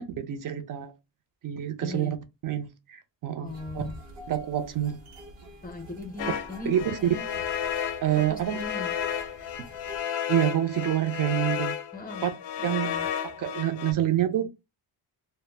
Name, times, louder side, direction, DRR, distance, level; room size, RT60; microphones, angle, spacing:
voice 1, 0.2-0.9 1.4-2.2 2.4-3.5 3.7-3.8 4.3-5.0 6.7-6.9 8.0-8.6 10.3-11.8 12.2-12.3 12.6-12.9 13.2-14.5, right 12 dB, 50° right, 0.5 m, -27 dB
voice 2, 1.8-2.1 3.4-3.9 5.6-7.3 8.3-8.9 11.9-12.3 12.7-13.1, left 2 dB, 20° left, 0.6 m, -38 dB
sound 1, 3.4-10.0, right 1 dB, 70° right, 0.9 m, -47 dB
sound 2, 6.2-13.9, left 9 dB, 65° left, 0.5 m, -32 dB
2.1 x 2.0 x 3.2 m
cardioid pair, 110°, 44 cm